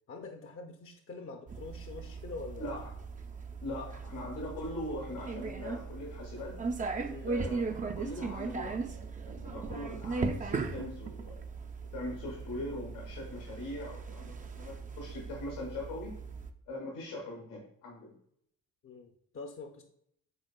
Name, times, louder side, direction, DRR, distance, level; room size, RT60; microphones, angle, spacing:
voice 1, 0.1-2.7 7.0-7.4 18.8-19.8, left 3 dB, 30° left, 5 dB, 0.6 m, -45 dB
sound 1, 1.5-16.5, right 4 dB, 20° right, 0.4 m, -38 dB
voice 2, 2.6-2.9 3.6-6.6 7.2-8.8 9.3-11.4 11.9-16.2 16.7-18.1, left 1 dB, 80° left, -2 dB, 1.5 m, -41 dB
6.5 x 3.6 x 2.2 m, 0.70 s
hypercardioid pair, 45°, 45 cm